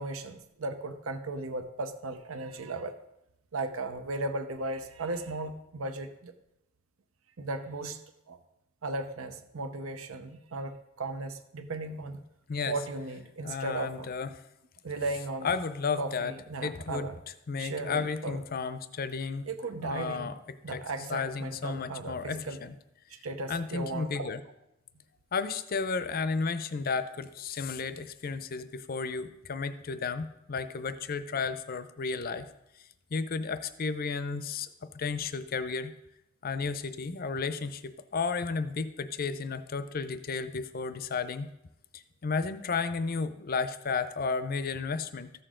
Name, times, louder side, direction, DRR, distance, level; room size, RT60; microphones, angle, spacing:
voice 1, 0.0-3.0 3.5-6.3 7.4-8.0 8.3-8.4 8.8-12.2 12.6-14.1 14.8-15.6 16.0-17.2 17.6-18.4 19.5-20.3 20.6-22.6 23.1-24.3, right 2 dB, 80° right, 9 dB, 0.8 m, -36 dB
voice 2, 13.4-14.3 15.4-16.3 16.6-17.1 17.5-19.5 19.8-20.3 20.7-20.8 21.1-22.7 23.5-24.4 25.3-32.5 33.1-35.9 36.4-41.5 41.9-45.3, left 5 dB, 45° left, 12 dB, 0.5 m, -33 dB
14.0 x 6.8 x 3.8 m, 0.86 s
head